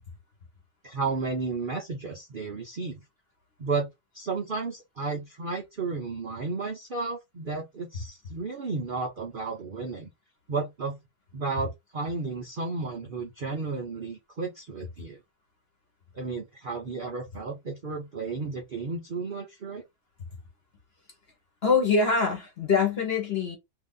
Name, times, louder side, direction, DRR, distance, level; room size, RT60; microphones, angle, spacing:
voice 1, 0.8-3.0 3.6-3.9 4.1-10.1 10.5-11.0 11.3-15.2 16.1-19.8, right 4 dB, 60° right, 0.5 m, -33 dB
voice 2, 21.6-23.6, left 4 dB, 40° left, 1.1 m, -24 dB
2.9 x 2.6 x 3.7 m
omnidirectional pair, 1.8 m